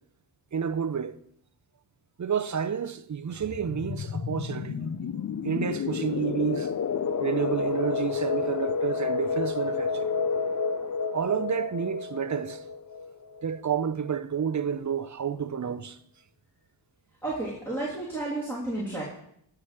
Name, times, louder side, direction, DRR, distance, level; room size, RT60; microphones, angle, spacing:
voice 1, 0.5-1.1 2.2-4.9 5.4-6.7 7.2-10.1 11.1-12.6 13.4-16.0, right 7 dB, 40° right, 0.7 m, -30 dB
sound 1, 3.4-13.9, left 5 dB, 40° left, 0.6 m, -30 dB
voice 2, 17.2-19.0, right 2 dB, 5° left, 3.0 m, -32 dB
15.0 x 5.1 x 5.8 m
wide cardioid pair, 100°, 46 cm